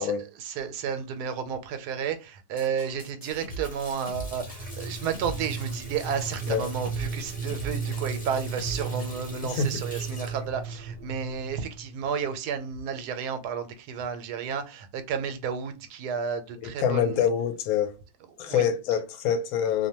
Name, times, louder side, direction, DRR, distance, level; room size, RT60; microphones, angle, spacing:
voice 1, 0.0-17.3 18.4-18.7, right 7 dB, 85° right, 1.1 m, -32 dB
sound 1, 2.6-9.2, right 2 dB, 45° left, 0.9 m, -42 dB
Water tap faucet, 3.3-11.8, left 1 dB, 10° left, 0.5 m, -45 dB
sound 2, 4.1-11.9, right 5 dB, 50° right, 0.7 m, -35 dB
voice 2, 16.6-17.9 18.4-19.9, left 7 dB, 75° left, 1.0 m, -25 dB
2.6 x 2.1 x 2.8 m
omnidirectional pair, 1.7 m